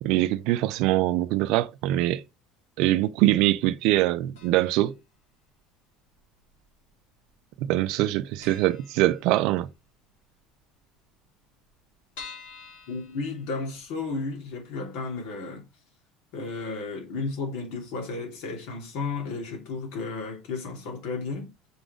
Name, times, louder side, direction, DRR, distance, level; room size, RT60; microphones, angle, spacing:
voice 1, 0.0-2.2 2.8-4.9 7.6-9.7, right 15 dB, 65° right, 0.4 m, -23 dB
sound 1, 4.3-4.9 5.1-5.2 6.2-6.9 7.2-7.3 7.6-7.7 8.0-8.1 8.4-9.7 10.1-10.2 10.5-10.6 10.8-10.9 11.4-14.0 14.4-14.5 14.9-15.0, left 5 dB, 85° left, 3.3 m, -47 dB
voice 2, 12.9-15.6 16.3-21.5, left 4 dB, 70° left, 2.8 m, -33 dB
5.9 x 3.9 x 5.0 m
supercardioid pair, 130°, 0 cm